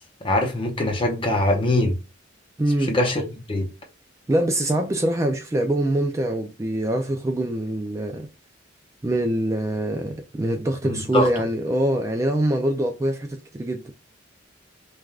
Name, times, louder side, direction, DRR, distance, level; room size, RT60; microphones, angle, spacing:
voice 1, 0.2-2.0 2.8-3.7 10.8-11.3, left 1 dB, 25° left, 0.7 m, -22 dB
voice 2, 2.6-2.9 4.3-8.3 9.0-13.9, right 1 dB, 15° right, 0.3 m, -24 dB
3.3 x 2.3 x 2.3 m
head